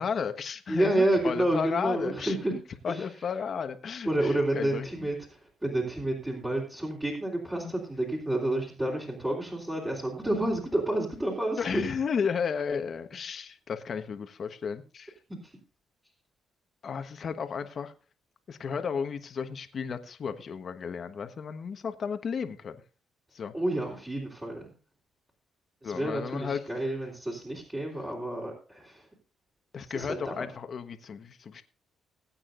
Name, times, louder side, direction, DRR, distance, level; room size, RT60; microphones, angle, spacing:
voice 1, 0.0-2.3 2.8-4.9 7.6-7.7 11.6-15.1 16.8-17.9 18.5-22.8 23.3-23.5 25.8-26.6 29.7-31.6, left 6 dB, 50° left, 8 dB, 1.2 m, -33 dB
voice 2, 0.7-2.5 2.9-3.1 4.1-11.8 15.3-15.5 23.5-24.7 25.8-29.1 29.9-30.5, right 1 dB, 15° right, -5 dB, 3.5 m, -30 dB
20.0 x 8.7 x 2.5 m, 0.36 s
cardioid pair, 90°, 0 cm